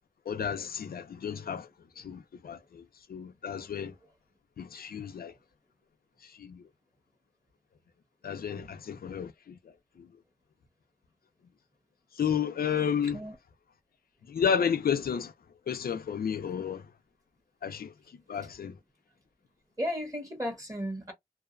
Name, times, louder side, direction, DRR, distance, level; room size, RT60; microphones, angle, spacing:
voice 1, 0.3-1.7 2.0-3.9 4.6-5.3 6.2-6.6 8.2-10.1 12.1-13.2 14.3-15.3 15.7-16.9 17.6-18.8, left 7 dB, 75° left, 0.4 m, -32 dB
voice 2, 19.8-21.1, equal, 20° right, 1.2 m, -35 dB
2.6 x 2.1 x 2.4 m
wide cardioid pair, 95°, 16 cm